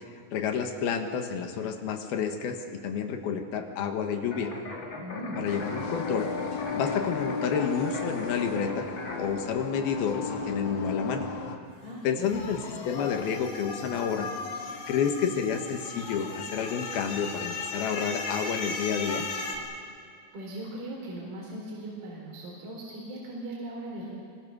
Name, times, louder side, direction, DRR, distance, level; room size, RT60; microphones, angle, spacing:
voice 1, 0.3-4.5 5.4-8.9 9.2-11.3 12.0-12.6 12.9-14.3 14.9-19.3, left 7 dB, 70° left, 5 dB, 3.3 m, -30 dB
sound 1, 4.3-9.3, left 3 dB, 35° left, 2.5 m, -39 dB
voice 2, 5.0-5.4 11.8-12.4 20.3-24.1, right 1 dB, 65° right, -3 dB, 5.4 m, -39 dB
sound 2, 5.4-11.6, left 4 dB, 50° left, 2.0 m, -35 dB
sound 3, 12.2-19.6, left 4 dB, 90° left, 4.3 m, -36 dB
26.0 x 24.0 x 6.4 m, 2.3 s
omnidirectional pair, 4.8 m